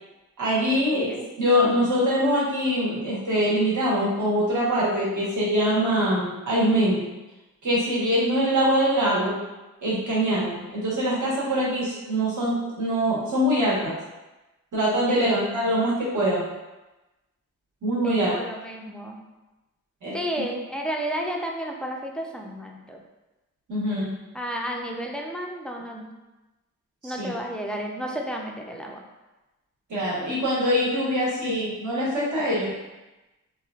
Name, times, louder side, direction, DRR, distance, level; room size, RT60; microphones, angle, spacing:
voice 1, 0.4-7.1 7.6-9.4 9.8-14.0 14.7-16.5 17.8-18.4 20.0-20.1 23.7-24.1 27.0-27.3 29.9-32.7, equal, 55° right, -6 dB, 1.2 m, -23 dB
voice 2, 15.1-15.7 18.0-19.2 20.1-23.0 24.3-26.1 27.0-29.0, right 1 dB, ahead, 0 dB, 0.4 m, -32 dB
3.0 x 2.4 x 2.3 m, 1.1 s
supercardioid pair, 50°, 36 cm